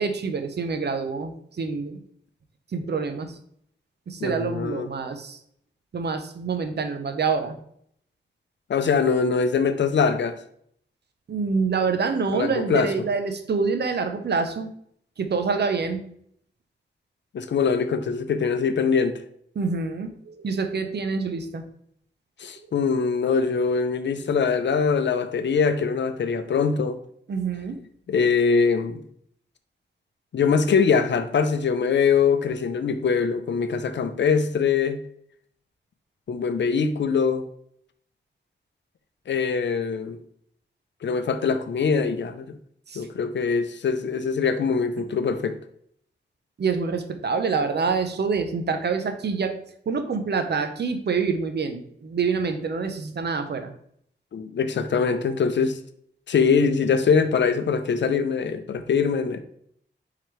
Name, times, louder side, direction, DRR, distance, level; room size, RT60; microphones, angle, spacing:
voice 1, 0.0-2.0 2.7-3.4 4.1-5.4 5.9-7.6 11.3-14.7 15.2-16.0 19.6-21.7 22.6-22.7 27.3-27.8 42.9-43.1 46.6-49.5 49.9-53.7, right 5 dB, 60° right, 0.6 m, -26 dB
voice 2, 4.2-4.9 8.7-10.4 12.3-12.9 17.3-19.2 22.4-27.0 28.1-29.0 30.3-35.0 36.3-37.4 39.3-40.2 41.0-42.6 43.0-45.6 54.3-55.8 56.3-59.4, left 5 dB, 70° left, 0.5 m, -23 dB
4.4 x 3.8 x 3.1 m
wide cardioid pair, 85°, 19 cm